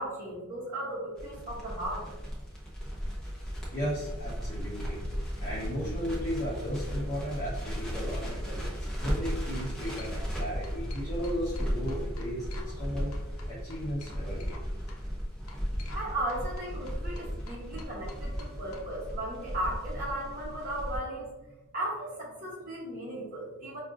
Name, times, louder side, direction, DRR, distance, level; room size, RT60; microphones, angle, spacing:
voice 1, 0.0-2.0 15.9-21.3 21.7-23.8, right 1 dB, 40° right, -6 dB, 1.0 m, -36 dB
Crackle, 1.2-21.0, equal, 5° left, 0.7 m, -36 dB
voice 2, 3.7-5.1 5.4-13.1 13.5-14.5, equal, 35° left, -10 dB, 0.9 m, -35 dB
sound 1, 8.8-9.1 9.5-10.4 10.6-12.8 13.1-14.6 14.9-15.0 15.5-16.0 16.3-18.8, left 4 dB, 85° left, 0.6 m, -50 dB
5.0 x 2.4 x 2.4 m, 1.0 s
head